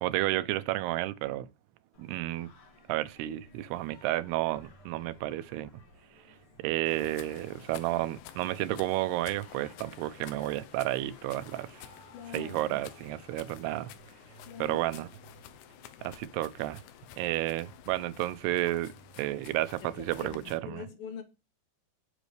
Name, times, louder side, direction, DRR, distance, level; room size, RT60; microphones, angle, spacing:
voice 1, 0.0-1.5 2.0-2.5 2.9-5.7 6.6-11.8 12.3-13.9 14.6-15.1 16.0-16.8 17.2-20.8, right 16 dB, 80° right, 2.6 m, -31 dB
Singing, 1.9-20.2, equal, 40° left, 2.3 m, -57 dB
sound 1, 6.9-20.6, left 11 dB, 85° left, 3.0 m, -51 dB
voice 2, 12.1-12.8 14.4-14.9 19.8-21.2, left 7 dB, 70° left, 2.5 m, -43 dB
17.0 x 7.4 x 3.3 m
omnidirectional pair, 4.8 m